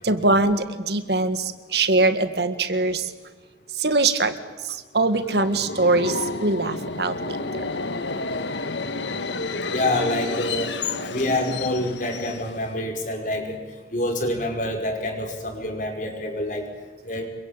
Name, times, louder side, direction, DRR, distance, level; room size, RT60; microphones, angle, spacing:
voice 1, 0.0-3.1 3.7-4.4 4.6-7.7, right 2 dB, 70° right, 10 dB, 1.8 m, -22 dB
Subway metro underground, 5.0-12.8, left 3 dB, 85° left, 1.5 m, -30 dB
voice 2, 9.7-13.6 13.9-16.7 17.0-17.3, left 1 dB, 45° left, 3 dB, 5.3 m, -27 dB
26.5 x 23.5 x 9.0 m, 1.2 s
head